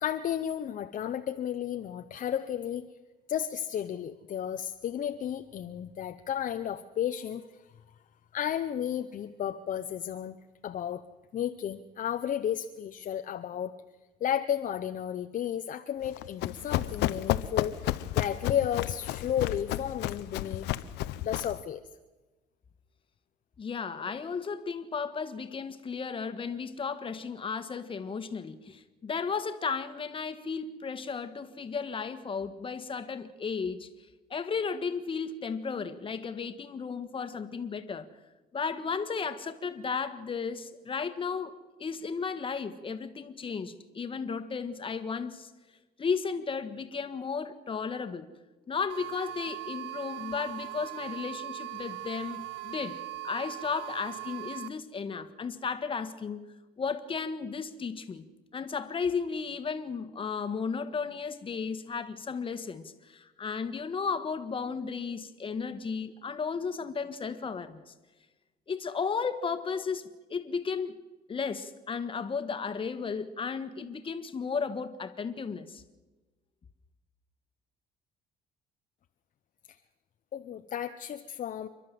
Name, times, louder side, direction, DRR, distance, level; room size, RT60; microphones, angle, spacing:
voice 1, 0.0-2.9 3.3-7.4 8.3-10.4 10.6-11.0 11.3-13.7 14.2-20.7 21.2-21.8 80.3-81.7, left 10 dB, 50° left, 0.9 m, -33 dB
Run, 16.0-21.6, left 15 dB, 85° left, 0.8 m, -32 dB
voice 2, 23.6-33.9 34.3-38.1 38.5-45.5 46.0-48.3 48.7-58.3 58.5-67.9 68.7-71.0 71.3-75.8, left 5 dB, 30° left, 1.7 m, -34 dB
sound 1, 48.9-54.7, right 15 dB, 85° right, 0.6 m, -40 dB
28.0 x 12.0 x 7.7 m
cardioid pair, 110°, 17 cm